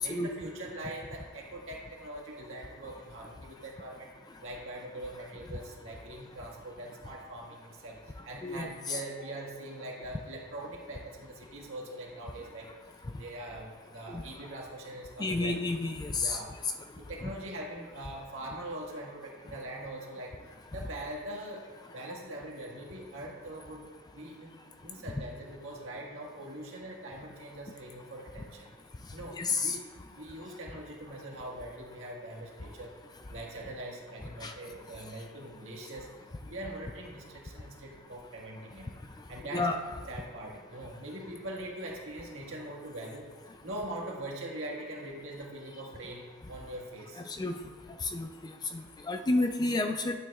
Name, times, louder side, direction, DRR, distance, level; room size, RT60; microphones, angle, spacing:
voice 1, 0.0-4.1 4.4-12.7 13.1-15.5 16.2-16.5 17.0-20.4 20.7-21.7 21.9-23.9 24.1-28.7 29.1-29.8 30.2-32.9 33.3-36.1 36.5-39.0 39.3-39.7 40.1-43.3 43.6-47.2, right 1 dB, 60° right, -2 dB, 1.7 m, -42 dB
voice 2, 8.4-9.0 14.1-14.2 15.2-16.4 29.4-29.8 34.4-34.5 39.5-39.8 47.4-47.5 48.1-48.3 49.1-50.1, left 2 dB, 20° left, 5 dB, 0.3 m, -30 dB
11.5 x 9.0 x 2.4 m, 1.5 s
head